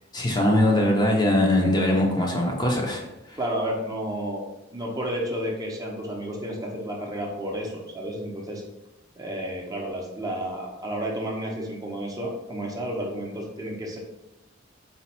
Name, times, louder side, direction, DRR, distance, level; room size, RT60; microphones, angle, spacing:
voice 1, 0.1-3.0 3.3-3.4, left 1 dB, 20° left, 0 dB, 0.6 m, -21 dB
voice 2, 3.4-4.4 4.7-8.6 9.2-14.0, equal, 20° right, -1 dB, 0.6 m, -31 dB
4.2 x 2.3 x 4.2 m, 0.97 s
head